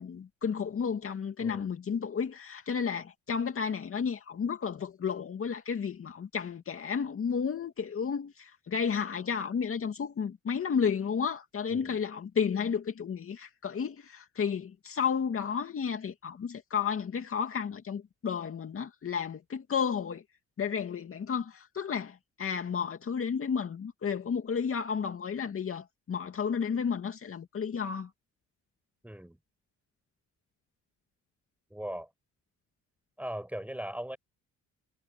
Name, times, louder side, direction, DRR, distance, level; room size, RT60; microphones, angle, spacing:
voice 1, 0.0-20.2 20.6-28.1, left 6 dB, 45° left, 2.4 m, -32 dB
voice 2, 1.4-1.7 11.7-12.0 29.0-29.4 31.7-32.1 33.2-34.2, right 1 dB, 5° right, 6.4 m, -39 dB
cardioid pair, 90°, 30 cm